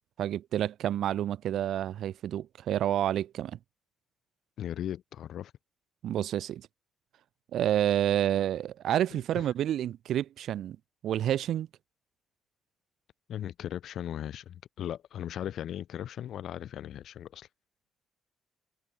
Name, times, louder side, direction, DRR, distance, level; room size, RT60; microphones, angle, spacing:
voice 1, 0.2-3.6 6.0-6.7 7.5-10.8 11.0-11.7, right 11 dB, 75° right, 1.1 m, -29 dB
voice 2, 4.6-5.5 9.1-9.2 13.3-17.5, left 10 dB, 70° left, 1.6 m, -37 dB
cardioid pair, 90°, 0 cm